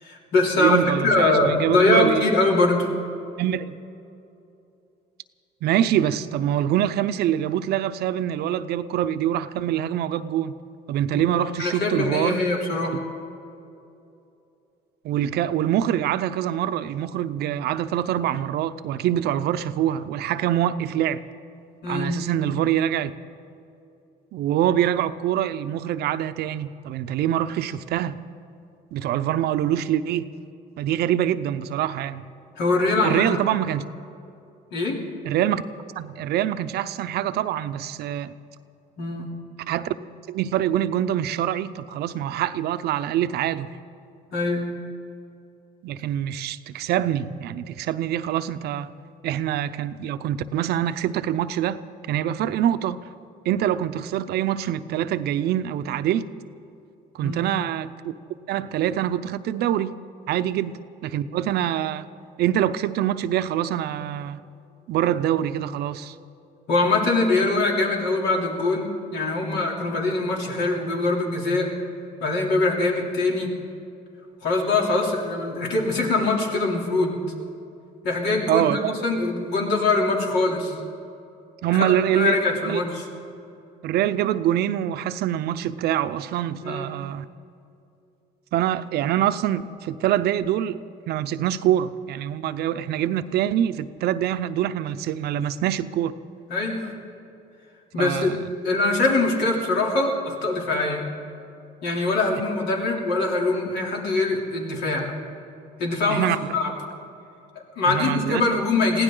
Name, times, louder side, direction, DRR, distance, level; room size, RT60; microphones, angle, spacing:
voice 1, 0.0-2.9 11.1-11.2 11.6-13.0 21.8-22.2 32.6-33.2 34.7-35.0 39.0-39.3 44.3-44.7 57.2-57.5 66.7-71.7 72.2-73.5 74.4-77.2 78.0-80.8 81.8-83.0 86.6-86.9 96.5-96.9 97.9-98.3 98.6-101.0 101.8-105.1 105.8-106.3 106.5-106.7 107.5-109.0, left 2 dB, 80° left, 3.2 m, -23 dB
voice 2, 0.6-2.2 3.4-3.8 5.6-10.5 10.9-12.4 15.0-21.2 21.9-23.1 24.3-28.2 28.9-30.3 30.8-32.2 33.0-33.8 35.2-35.6 36.0-38.3 39.7-40.0 40.3-43.7 45.8-48.9 49.2-51.8 52.1-53.0 53.4-56.3 57.1-57.9 58.5-60.0 60.3-62.1 62.4-64.4 64.9-66.2 78.5-79.0 81.6-82.4 82.7-82.8 83.8-87.3 88.5-90.8 91.1-96.1 98.0-98.5 106.1-106.5 107.8-108.4, right 11 dB, 75° right, 0.6 m, -24 dB
22.0 x 16.0 x 3.9 m
cardioid pair, 110°, 17 cm